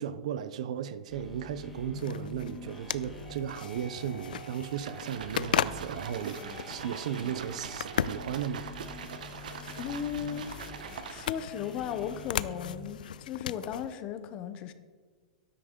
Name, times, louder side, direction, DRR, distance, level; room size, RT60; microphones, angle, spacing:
voice 1, 0.0-6.4 6.7-8.7, right 9 dB, 50° right, 0.6 m, -35 dB
sound 1, 1.1-13.2, left 2 dB, ahead, 1.3 m, -46 dB
sound 2, 1.9-13.9, left 9 dB, 90° left, 0.5 m, -37 dB
sound 3, 4.7-11.5, right 7 dB, 70° right, 1.0 m, -43 dB
voice 2, 9.8-14.7, left 8 dB, 20° left, 0.5 m, -36 dB
13.0 x 9.9 x 3.7 m
supercardioid pair, 175°, 4 cm